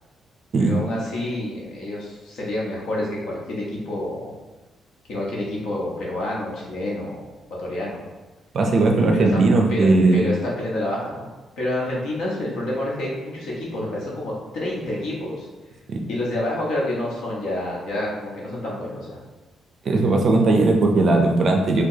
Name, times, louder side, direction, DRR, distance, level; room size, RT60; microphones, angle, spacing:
voice 1, 0.6-4.3 5.1-7.3 7.6-8.0 9.1-11.3 11.6-15.5 16.1-19.2, left 1 dB, 70° left, -4 dB, 1.0 m, -28 dB
voice 2, 8.5-10.3 15.9-16.0 19.9-21.8, right 2 dB, 40° right, 2 dB, 0.4 m, -18 dB
4.6 x 2.2 x 2.7 m, 1.2 s
cardioid pair, 170°, 0 cm